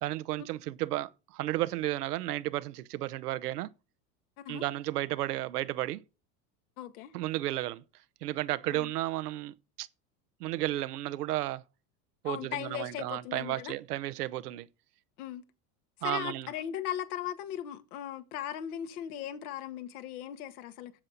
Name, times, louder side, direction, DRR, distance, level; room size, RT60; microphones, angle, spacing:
voice 1, 0.0-3.7 4.5-6.0 7.1-7.8 8.2-9.9 10.4-11.6 12.2-14.7 16.0-16.5, right 15 dB, 80° right, 1.0 m, -33 dB
voice 2, 6.8-7.1 8.7-8.9 12.2-13.7 15.2-15.4 16.0-20.9, left 11 dB, 75° left, 1.9 m, -38 dB
10.5 x 7.8 x 4.0 m
hypercardioid pair, 105°, 46 cm